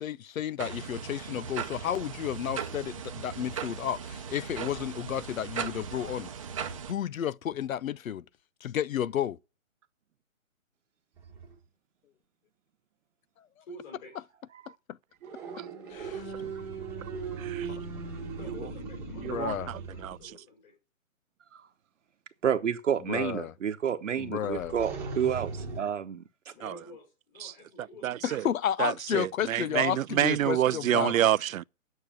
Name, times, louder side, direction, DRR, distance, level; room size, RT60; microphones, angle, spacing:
voice 1, 0.0-6.3 6.9-8.2 8.6-9.4 14.9-15.0 15.9-16.3 17.7-17.8 19.1-19.7 23.1-23.5 24.2-24.8 28.2-31.1, left 10 dB, 80° left, 0.6 m, -32 dB
sound 1, 0.6-6.9, right 7 dB, 25° right, 0.7 m, -38 dB
sound 2, 11.2-11.6 15.2-20.3 24.5-25.8, right 4 dB, 5° right, 1.3 m, -38 dB
voice 2, 13.7-14.2 18.3-20.7 26.5-28.4, left 2 dB, 30° left, 5.1 m, -49 dB
voice 3, 17.4-17.7 19.2-20.2 26.6-26.7 27.4-27.5 28.0-28.5 28.8-31.6, right 11 dB, 80° right, 0.5 m, -28 dB
voice 4, 22.4-26.2, right 8 dB, 65° right, 1.0 m, -30 dB
9.2 x 6.6 x 8.8 m
hypercardioid pair, 160°, 40 cm